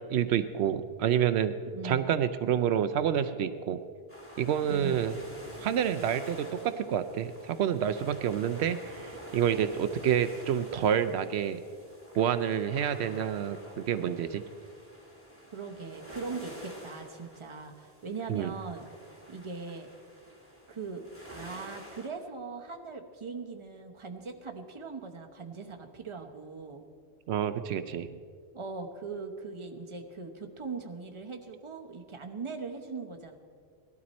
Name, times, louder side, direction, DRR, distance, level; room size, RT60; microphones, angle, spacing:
voice 1, 0.1-1.5 1.8-3.8 4.4-5.1 5.6-11.6 12.2-14.4 18.3-18.5 27.3-28.2, right 9 dB, 80° right, 10 dB, 0.8 m, -28 dB
voice 2, 1.7-2.1 4.7-5.0 15.5-18.9 19.3-19.9 20.7-26.8 28.5-33.4, right 4 dB, 30° right, 4 dB, 1.0 m, -40 dB
sound 1, 4.1-22.1, equal, 10° left, 2.6 m, -48 dB
18.0 x 12.0 x 4.2 m, 2.1 s
omnidirectional pair, 1.1 m